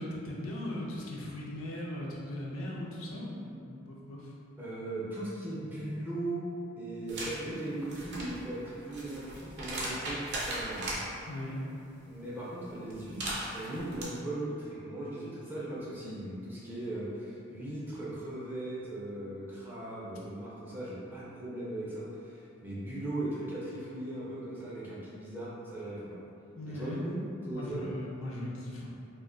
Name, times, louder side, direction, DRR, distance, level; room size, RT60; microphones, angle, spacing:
voice 1, 0.0-4.3 11.3-11.6 26.6-27.0 27.5-28.9, left 1 dB, 80° left, -4 dB, 0.5 m, -38 dB
voice 2, 4.6-6.5 6.8-10.9 12.1-26.2 26.7-27.9, right 1 dB, 10° right, -7 dB, 0.4 m, -38 dB
sound 1, 7.1-7.4 7.8-11.0 12.9-14.0, right 1 dB, 50° right, 0.6 m, -37 dB
2.5 x 2.1 x 3.7 m, 2.6 s
head